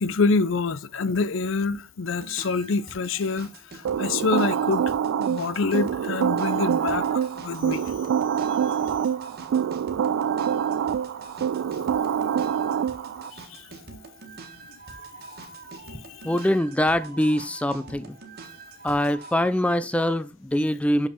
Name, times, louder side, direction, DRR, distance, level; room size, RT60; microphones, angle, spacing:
voice 1, 0.0-3.5 4.0-4.9 5.2-7.9 11.7-11.9 15.9-16.0, left 4 dB, 65° left, 0.5 m, -26 dB
sound 1, 2.1-19.3, right 4 dB, 50° right, 1.5 m, -45 dB
sound 2, 3.8-13.3, right 8 dB, 75° right, 0.3 m, -26 dB
voice 2, 16.2-18.2 18.8-21.1, left 1 dB, 5° left, 0.3 m, -23 dB
6.5 x 5.8 x 4.2 m
head